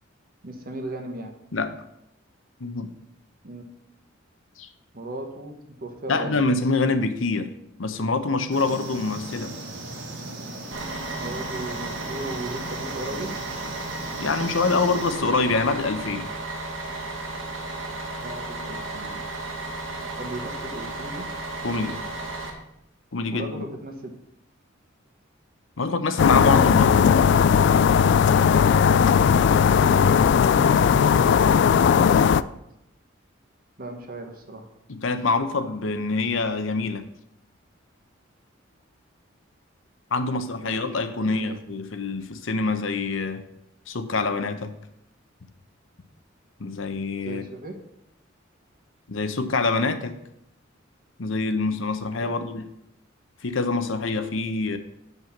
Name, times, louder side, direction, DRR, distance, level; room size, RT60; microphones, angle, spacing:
voice 1, 0.4-1.3 3.4-3.6 4.9-6.4 11.1-13.3 18.2-19.2 20.2-21.3 23.3-24.1 29.7-31.5 31.9-32.5 33.8-34.7 40.2-40.7 41.2-41.6 47.2-47.7 52.2-52.3, right 1 dB, 50° right, 4 dB, 1.4 m, -37 dB
voice 2, 2.6-2.9 4.6-4.7 6.1-7.5 7.8-9.6 14.2-16.3 21.6-22.0 23.1-23.6 25.8-27.0 34.9-37.0 40.1-43.4 43.9-44.7 46.6-47.4 49.1-50.2 51.2-52.7 53.4-54.8, left 3 dB, 75° left, 9 dB, 0.8 m, -25 dB
sound 1, 8.5-15.1, right 2 dB, 70° right, 1.8 m, -38 dB
Bus, 10.7-22.5, right 2 dB, 90° right, 1.8 m, -34 dB
sound 2, 26.2-32.4, left 7 dB, 60° left, 0.3 m, -17 dB
7.6 x 5.5 x 7.2 m, 0.80 s
head